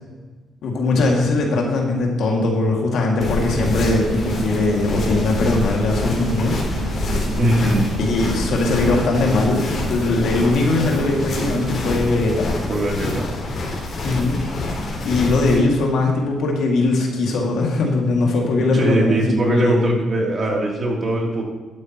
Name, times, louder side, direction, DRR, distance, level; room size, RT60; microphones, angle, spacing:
voice 1, 0.6-6.6 8.0-12.5 14.0-14.4 15.0-19.9, left 2 dB, 75° left, 0 dB, 2.2 m, -20 dB
sound 1, 3.2-15.6, left 1 dB, 55° left, 3.4 m, -26 dB
sound 2, 3.4-12.2, right 4 dB, 90° right, 2.1 m, -33 dB
voice 2, 7.4-7.8 12.7-13.3 18.6-21.4, right 1 dB, 40° right, -2 dB, 3.1 m, -20 dB
12.0 x 8.9 x 3.0 m, 1.4 s
cardioid pair, 90°, 0 cm